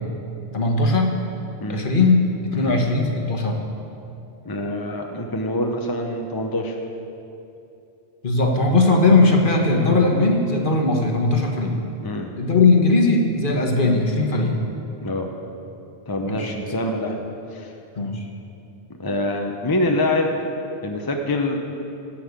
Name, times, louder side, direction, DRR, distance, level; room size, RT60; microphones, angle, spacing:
voice 1, 0.5-1.1 1.7-3.6 8.2-11.7 12.4-14.6 16.3-16.5 17.9-18.2, left 3 dB, 50° left, 2 dB, 1.5 m, -19 dB
voice 2, 4.4-6.8 12.0-12.3 15.0-15.3 16.1-17.2 17.5-17.7 19.0-20.3 20.8-21.6, left 1 dB, 20° left, 2 dB, 0.8 m, -25 dB
16.0 x 5.7 x 8.1 m, 2.7 s
omnidirectional pair, 1.1 m